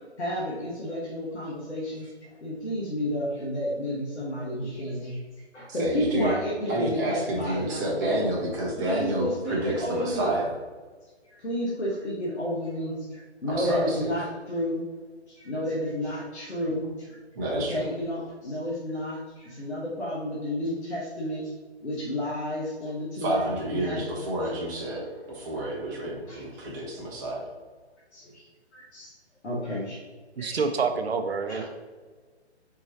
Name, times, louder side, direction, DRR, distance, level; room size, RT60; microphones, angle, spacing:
voice 1, 0.2-2.1 2.4-5.2 5.5-8.2 8.8-10.3 11.4-14.8 15.3-17.2 17.5-21.5 21.8-24.1 24.4-24.5 26.3-26.4 28.1-29.1 29.4-30.0 30.4-30.7 31.5-31.6, equal, 70° left, -5 dB, 1.3 m, -31 dB
voice 2, 5.7-6.3 6.7-10.5 13.5-14.1 17.3-17.9 23.2-27.5, right 1 dB, 15° right, -3 dB, 0.8 m, -29 dB
voice 3, 30.4-31.6, right 5 dB, 65° right, 7 dB, 0.6 m, -27 dB
4.5 x 4.0 x 2.9 m, 1.4 s
figure-of-eight pair, 145°, 34 cm